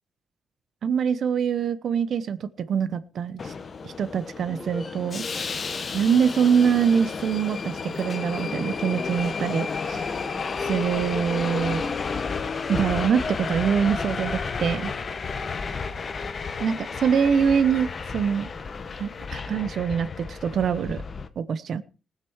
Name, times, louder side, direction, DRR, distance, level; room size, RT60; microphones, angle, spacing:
voice 1, 0.8-3.5 3.8-5.3 5.9-10.1 10.6-11.8 12.7-14.9 16.6-18.5 19.0-21.0 21.4-21.8, right 7 dB, 65° right, 13 dB, 1.0 m, -24 dB
Subway metro underground, 3.4-21.3, left 5 dB, 45° left, 1.1 m, -32 dB
sound 1, 4.5-7.4, equal, 5° right, 1.7 m, -43 dB
19.5 x 6.8 x 4.7 m, 0.34 s
cardioid pair, 105°, 0 cm